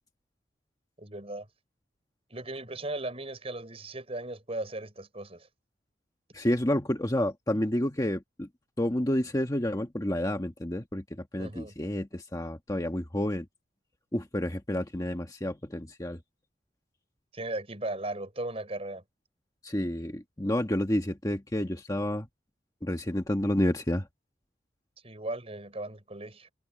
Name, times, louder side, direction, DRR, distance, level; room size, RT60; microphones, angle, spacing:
voice 1, 1.0-1.5 2.3-5.5 11.4-11.7 17.3-19.0 25.0-26.5, right 2 dB, 35° right, 6.2 m, -37 dB
voice 2, 6.3-8.5 8.8-11.0 11.3-13.4 14.1-16.2 19.6-22.3 22.8-24.1, left 1 dB, 20° left, 1.3 m, -29 dB
head